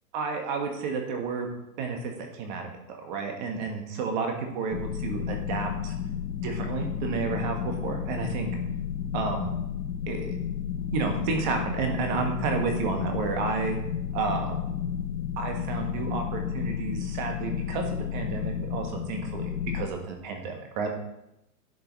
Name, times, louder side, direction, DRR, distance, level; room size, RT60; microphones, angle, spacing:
voice 1, 0.1-1.5 1.8-2.1 2.4-5.9 6.4-8.5 9.1-9.5 10.1-10.3 10.9-13.8 14.1-14.5 15.4-17.9 18.1-20.9, right 5 dB, 30° right, 4 dB, 1.4 m, -31 dB
sound 1, 4.7-19.9, left 8 dB, 80° left, 1.0 m, -32 dB
10.5 x 5.5 x 4.0 m, 0.85 s
hypercardioid pair, 155°, 46 cm